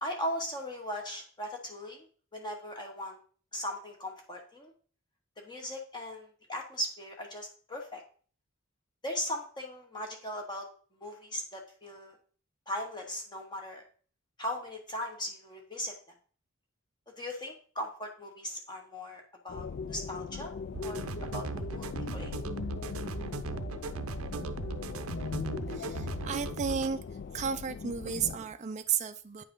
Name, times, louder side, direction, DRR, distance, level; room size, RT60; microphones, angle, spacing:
voice 1, 0.0-2.1 2.3-3.2 3.5-4.7 5.4-8.0 9.0-10.7 10.9-12.2 12.7-13.8 14.4-15.9 17.2-20.5 20.8-22.3, equal, 20° left, 1.2 m, -38 dB
sound 1, 19.5-28.4, left 5 dB, 50° left, 0.3 m, -39 dB
sound 2, 20.7-26.9, right 4 dB, 80° right, 0.6 m, -38 dB
voice 2, 25.7-27.0 27.3-29.4, right 6 dB, 35° right, 0.4 m, -33 dB
9.2 x 5.4 x 3.7 m
head